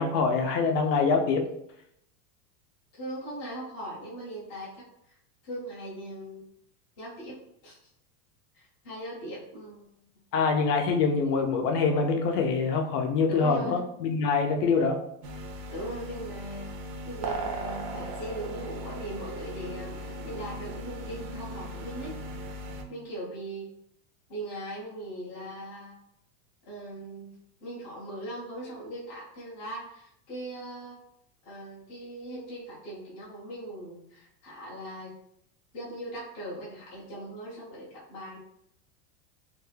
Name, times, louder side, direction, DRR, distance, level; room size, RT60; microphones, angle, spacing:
voice 1, 0.0-1.4 10.3-15.0, left 4 dB, 75° left, 4 dB, 0.7 m, -25 dB
voice 2, 2.9-5.1 5.4-6.4 7.0-7.4 7.6-7.8 8.5-9.9 13.3-13.8 15.7-16.7 17.1-22.2 22.9-23.7 24.3-25.9 26.7-27.3 27.6-31.0 31.4-35.1 35.7-38.4, right 1 dB, 20° left, -7 dB, 0.4 m, -39 dB
sound 1, 15.2-22.8, right 1 dB, 80° right, 0.7 m, -37 dB
2.5 x 2.3 x 3.2 m, 0.76 s
supercardioid pair, 180°, 47 cm